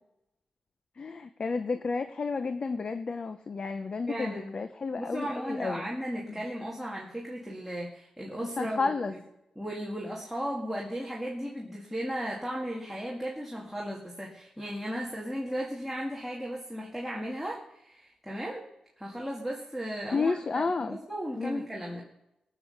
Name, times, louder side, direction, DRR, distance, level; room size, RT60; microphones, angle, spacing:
voice 1, 1.0-5.8 8.6-9.1 20.1-21.0 21.3-21.8, left 4 dB, 40° left, 9 dB, 0.7 m, -31 dB
voice 2, 4.1-4.6 5.0-9.2 9.6-18.6 19.0-22.0, equal, ahead, -4 dB, 2.0 m, -36 dB
18.5 x 7.6 x 6.6 m, 0.88 s
wide cardioid pair, 115°, 2 cm